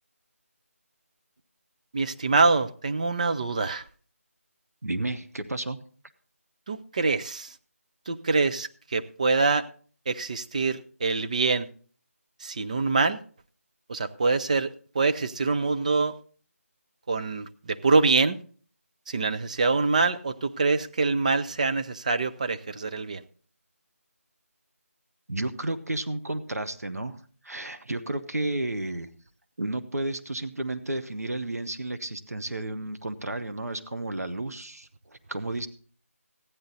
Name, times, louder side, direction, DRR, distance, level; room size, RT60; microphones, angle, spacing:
voice 1, 1.9-3.8 6.7-7.5 8.1-9.7 10.1-11.7 12.4-13.2 13.9-16.2 17.1-18.4 19.1-23.2, right 4 dB, 30° right, 0.6 m, -25 dB
voice 2, 4.8-5.8 25.3-27.2 27.4-29.1 29.6-35.7, right 2 dB, 85° right, 1.2 m, -32 dB
15.0 x 10.0 x 4.0 m
figure-of-eight pair, 165°, 8 cm